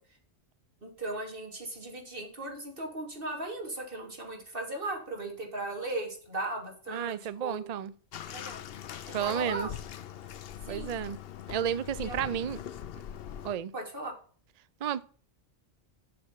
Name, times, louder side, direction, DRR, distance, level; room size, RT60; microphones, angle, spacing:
voice 1, 0.8-7.6 8.3-8.6 9.2-9.7 10.6-10.9 12.0-12.3 13.7-14.1, right 2 dB, 50° right, 3.0 m, -37 dB
voice 2, 6.9-7.9 9.1-9.7 10.7-11.2 11.5-12.6 13.4-13.7 14.8-15.0, right 9 dB, 65° right, 0.4 m, -32 dB
Bathtub (filling or washing), 8.1-13.5, left 9 dB, 60° left, 0.8 m, -42 dB
7.8 x 6.6 x 5.8 m
omnidirectional pair, 1.2 m